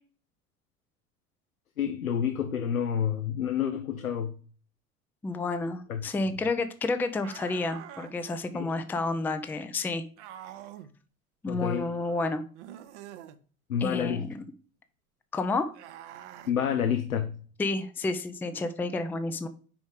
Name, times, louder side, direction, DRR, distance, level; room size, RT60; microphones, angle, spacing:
voice 1, 1.8-4.4 5.9-6.0 8.5-8.7 11.5-11.9 13.7-14.3 16.5-17.4, left 8 dB, 80° left, 0.7 m, -29 dB
voice 2, 5.2-10.0 11.4-12.5 13.8-14.5 15.3-15.7 17.6-19.5, left 3 dB, 5° left, 0.4 m, -30 dB
sound 1, 7.2-8.1 10.2-10.9 12.5-13.4 15.7-16.5, right 11 dB, 55° right, 0.7 m, -45 dB
5.1 x 5.0 x 5.0 m
figure-of-eight pair, 70°, 42 cm